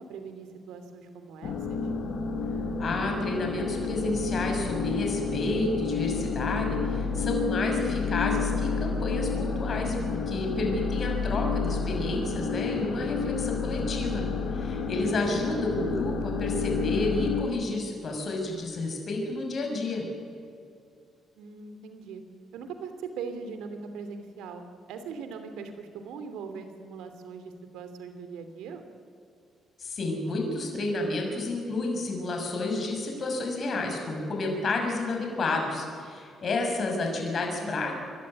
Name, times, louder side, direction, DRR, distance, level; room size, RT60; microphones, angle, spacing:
voice 1, 0.0-1.8 21.4-22.2 22.5-28.8 37.4-37.8, right 5 dB, 85° right, 8 dB, 2.8 m, -40 dB
sound 1, 1.4-17.4, left 5 dB, 70° left, 2.9 m, -30 dB
voice 2, 2.8-14.2 14.5-20.0 29.8-38.0, left 2 dB, 50° left, 2 dB, 6.4 m, -30 dB
28.0 x 12.5 x 9.9 m, 2.4 s
supercardioid pair, 70°, 0 cm